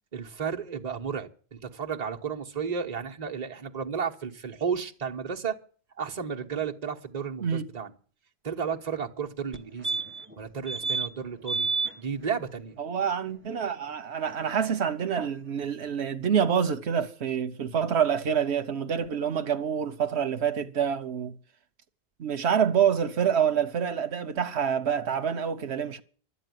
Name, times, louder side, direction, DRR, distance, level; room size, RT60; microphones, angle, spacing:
voice 1, 0.1-5.6 6.0-7.9 8.4-10.0 10.4-11.7 12.0-12.8, right 6 dB, 40° right, 1.2 m, -33 dB
sound 1, 9.5-9.6 9.8-10.3 10.7-11.1 11.5-11.9 14.3-14.4 14.6-14.7, right 4 dB, 15° right, 0.8 m, -29 dB
voice 2, 12.8-21.3 22.2-26.0, right 8 dB, 80° right, 1.2 m, -27 dB
12.5 x 8.3 x 9.3 m
omnidirectional pair, 1.1 m